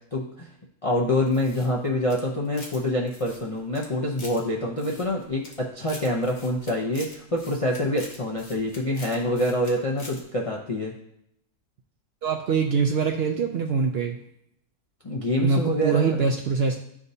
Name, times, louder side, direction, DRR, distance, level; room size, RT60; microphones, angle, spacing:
voice 1, 0.1-0.5 0.8-10.9 15.0-16.2, left 1 dB, 50° left, -2 dB, 0.4 m, -26 dB
sound 1, 1.3-2.8 3.1-4.4 4.8-5.6 5.8-9.7 10.0-10.2, left 2 dB, 35° left, 1.0 m, -44 dB
voice 2, 12.2-14.2 15.4-16.8, right 5 dB, 75° right, 3 dB, 0.5 m, -23 dB
11.0 x 3.6 x 2.7 m, 0.75 s
omnidirectional pair, 1.6 m